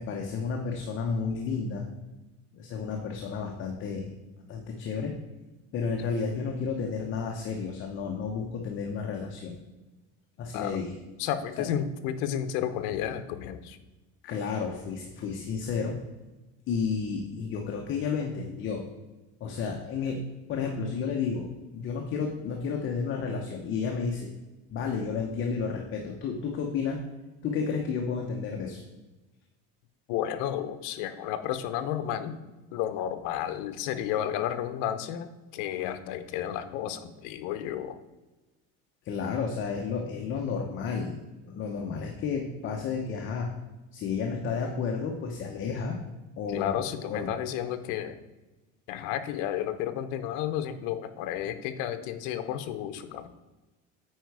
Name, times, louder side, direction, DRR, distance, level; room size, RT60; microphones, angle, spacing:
voice 1, 0.0-1.9 2.5-4.1 4.5-5.1 5.7-9.6 10.4-10.9 11.6-11.7 14.2-16.0 16.7-18.8 19.4-20.2 20.5-24.3 24.7-27.0 27.4-28.8 39.0-41.2 41.4-43.5 43.9-46.0 46.4-47.3, left 5 dB, 40° left, 1 dB, 0.9 m, -31 dB
voice 2, 11.2-13.8 30.1-32.4 32.7-38.0 46.5-48.1 48.9-53.3, left 10 dB, 70° left, 9 dB, 0.8 m, -32 dB
9.1 x 4.6 x 4.7 m, 1.1 s
cardioid pair, 155°, 31 cm